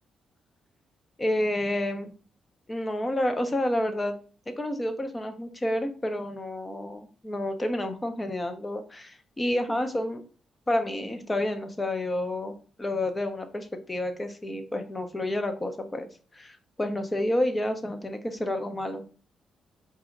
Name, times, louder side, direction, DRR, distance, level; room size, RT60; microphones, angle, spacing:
voice 1, 1.2-2.1 2.7-4.1 4.5-10.2 10.7-12.5 12.8-19.0, left 1 dB, 20° left, 7 dB, 0.9 m, -29 dB
4.9 x 2.8 x 3.8 m, 0.38 s
cardioid pair, 75°, 0 cm